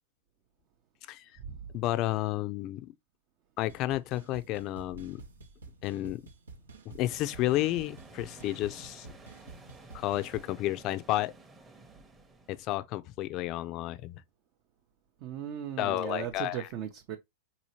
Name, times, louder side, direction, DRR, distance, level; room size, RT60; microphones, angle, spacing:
voice 1, 1.7-2.9 3.6-5.2 5.8-6.2 6.9-9.2 9.9-11.3 12.5-14.2 15.8-16.7, left 16 dB, 40° left, 0.4 m, -31 dB
sound 1, 3.7-10.5, right 3 dB, 85° right, 0.7 m, -50 dB
sound 2, 7.0-12.7, right 3 dB, 15° right, 0.8 m, -52 dB
voice 2, 15.2-17.2, right 9 dB, 45° right, 0.6 m, -37 dB
4.0 x 2.8 x 2.8 m
hypercardioid pair, 100°, 0 cm